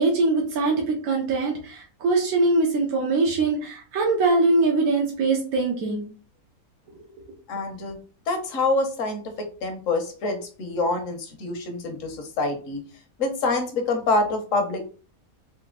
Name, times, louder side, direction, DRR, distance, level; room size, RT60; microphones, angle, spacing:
voice 1, 0.0-6.1, right 3 dB, 75° right, -1 dB, 1.4 m, -22 dB
voice 2, 7.5-8.0 8.3-9.3 9.6-12.8 13.2-14.9, left 3 dB, 65° left, 5 dB, 1.3 m, -26 dB
4.1 x 2.7 x 3.8 m, 0.39 s
omnidirectional pair, 1.5 m